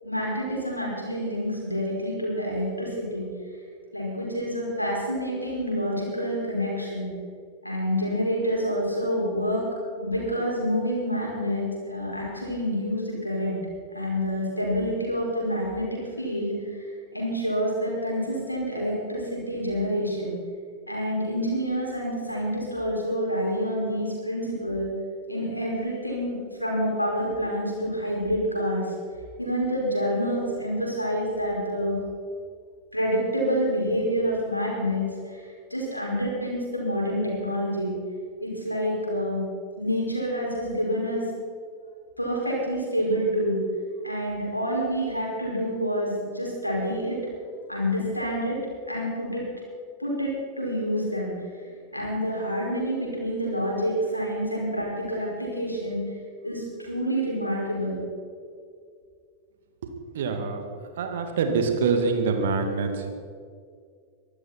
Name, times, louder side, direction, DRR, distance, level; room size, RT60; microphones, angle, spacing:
voice 1, 0.0-3.3 3.9-7.1 7.6-9.6 10.0-13.6 13.9-20.4 20.9-24.9 25.3-28.9 29.4-32.0 32.9-37.9 38.4-39.4 39.8-41.2 42.2-43.6 44.0-47.2 47.7-48.6 48.9-49.4 50.0-51.3 51.6-56.0 56.4-58.0, equal, 90° left, -3 dB, 5.5 m, -28 dB
voice 2, 60.1-60.6 61.0-63.1, right 4 dB, 60° right, 5 dB, 2.2 m, -25 dB
24.0 x 13.0 x 4.6 m, 2.2 s
figure-of-eight pair, 90°, 0 cm